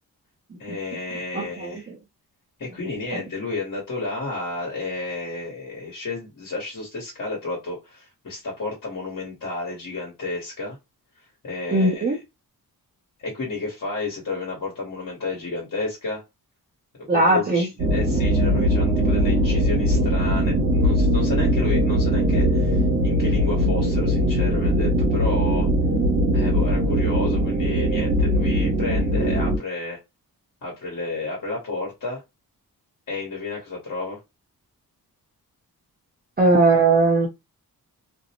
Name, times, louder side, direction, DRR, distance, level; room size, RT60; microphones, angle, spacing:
voice 1, 0.6-1.9 2.6-10.8 11.4-12.2 13.2-16.2 17.1-25.7 26.3-30.0 30.6-32.2 33.1-34.2, left 3 dB, 50° left, 1.2 m, -31 dB
voice 2, 1.3-1.8 11.7-12.2 17.1-17.7 36.4-37.3, right 2 dB, 25° right, 0.6 m, -19 dB
sound 1, 17.8-29.6, equal, 70° right, 0.9 m, -20 dB
2.5 x 2.0 x 2.8 m
wide cardioid pair, 135°, 38 cm